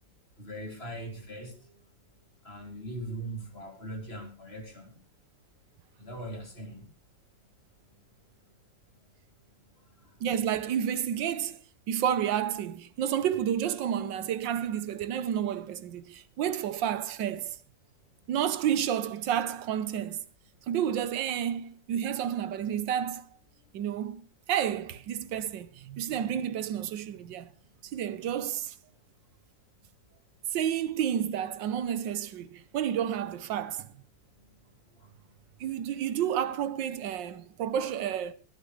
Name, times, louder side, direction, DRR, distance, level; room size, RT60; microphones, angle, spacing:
voice 1, 0.4-1.8 2.4-5.0 6.0-6.9 35.0-35.1, right 1 dB, 35° left, 3.4 m, -40 dB
voice 2, 10.2-11.6 11.9-17.6 18.3-20.2 20.7-23.3 23.7-27.5 27.9-28.7 30.5-33.9 35.6-38.3, right 9 dB, 85° right, 1.6 m, -30 dB
20.5 x 11.0 x 3.3 m
omnidirectional pair, 2.0 m